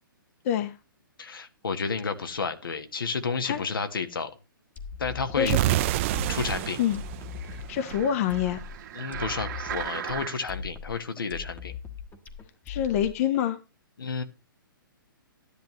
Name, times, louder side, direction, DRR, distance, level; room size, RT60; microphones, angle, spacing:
voice 1, 1.2-4.3 5.0-5.5 6.3-6.8 8.9-11.7 14.0-14.2, left 5 dB, 75° left, 7 dB, 1.5 m, -31 dB
sound 1, 4.8-13.4, left 6 dB, 15° left, 1.3 m, -40 dB
sound 2, 5.5-8.3, right 15 dB, 35° right, 0.4 m, -28 dB
sound 3, 6.6-10.6 11.2-11.3, right 10 dB, 50° right, 1.9 m, -39 dB
voice 2, 7.7-8.6 12.7-13.6, left 9 dB, 40° left, 10 dB, 1.1 m, -26 dB
13.0 x 10.0 x 3.1 m, 0.29 s
figure-of-eight pair, 125°, 12 cm